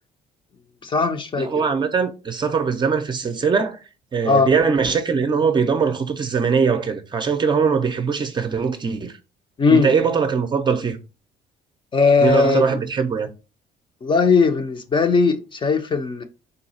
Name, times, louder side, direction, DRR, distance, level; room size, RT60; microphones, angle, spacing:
voice 1, 0.8-1.6 4.2-4.5 9.6-9.9 11.9-12.8 14.0-16.2, left 4 dB, 30° left, 0.6 m, -18 dB
voice 2, 1.4-3.8 4.1-9.1 9.7-11.0 12.2-13.3, right 5 dB, 25° right, 0.5 m, -21 dB
3.8 x 2.3 x 4.0 m
cardioid pair, 110°, 17 cm